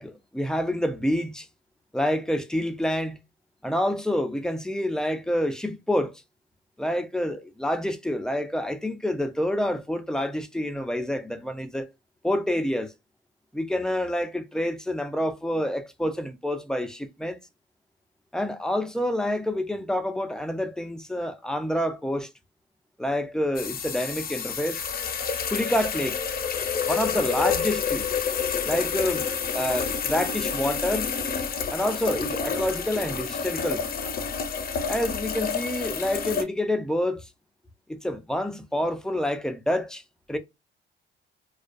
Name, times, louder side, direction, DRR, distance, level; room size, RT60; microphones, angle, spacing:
voice 1, 0.0-1.5 1.9-3.2 3.6-6.1 6.8-11.9 12.2-12.9 13.5-17.4 18.3-22.3 23.0-24.8 25.5-26.2 26.9-28.0 28.6-29.3 29.5-31.1 31.7-33.9 34.9-37.3 37.9-40.0 40.3-40.4, left 1 dB, 5° left, 0.4 m, -27 dB
sound 1, 23.5-36.4, left 6 dB, 50° left, 0.6 m, -29 dB
2.3 x 2.2 x 2.4 m
cardioid pair, 90°, 20 cm